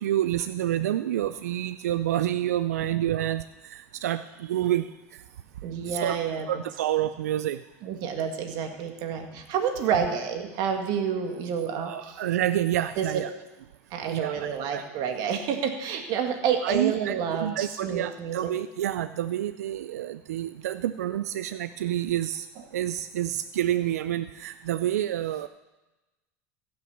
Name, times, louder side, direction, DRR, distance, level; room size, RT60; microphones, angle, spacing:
voice 1, 0.0-3.4 3.7-4.8 5.9-6.2 6.5-7.6 11.9-13.3 14.1-14.9 16.6-22.5 22.7-25.5, right 12 dB, 85° right, 13 dB, 0.4 m, -28 dB
voice 2, 5.6-6.5 7.8-12.2 13.0-13.2 13.9-18.5, right 7 dB, 60° right, 5 dB, 1.9 m, -29 dB
15.5 x 6.3 x 7.2 m, 1.1 s
hypercardioid pair, 95°, 8 cm